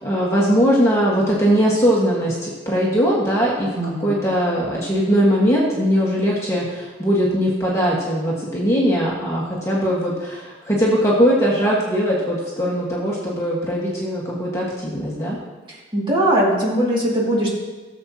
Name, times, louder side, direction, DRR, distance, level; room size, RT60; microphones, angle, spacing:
voice 1, 0.0-15.4, equal, 15° left, -5 dB, 1.5 m, -20 dB
voice 2, 3.7-4.3 15.7-17.5, right 1 dB, 25° right, -5 dB, 2.2 m, -21 dB
16.0 x 7.3 x 2.9 m, 1.3 s
head